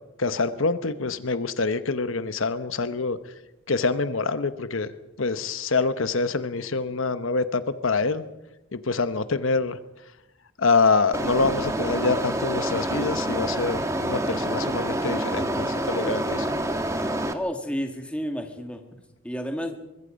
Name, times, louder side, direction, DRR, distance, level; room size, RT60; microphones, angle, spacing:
voice 1, 0.2-3.2 3.7-4.9 5.2-8.2 8.7-9.8 10.6-16.5, left 4 dB, 75° left, 12 dB, 1.0 m, -25 dB
sound 1, 11.1-17.3, right 1 dB, 15° right, 1.3 m, -27 dB
voice 2, 17.3-18.8 19.2-19.7, equal, 5° left, 4 dB, 2.1 m, -30 dB
24.0 x 21.5 x 5.2 m, 0.93 s
head